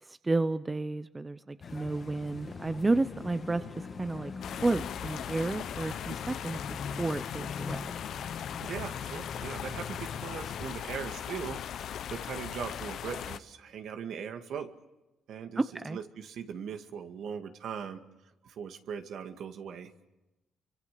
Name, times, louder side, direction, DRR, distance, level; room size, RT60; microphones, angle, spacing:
voice 1, 0.0-4.3 4.6-6.6 7.0-7.9 15.6-16.0, right 2 dB, 20° right, 12 dB, 0.8 m, -31 dB
sound 1, 1.6-10.8, left 5 dB, 45° left, 2.2 m, -42 dB
sound 2, 4.4-13.4, left 9 dB, 70° left, 1.0 m, -39 dB
voice 2, 8.6-14.7 15.3-15.6 15.9-18.0 18.4-19.9, right 7 dB, 70° right, 6 dB, 2.1 m, -40 dB
28.5 x 24.5 x 6.8 m, 0.99 s
cardioid pair, 90°, 0 cm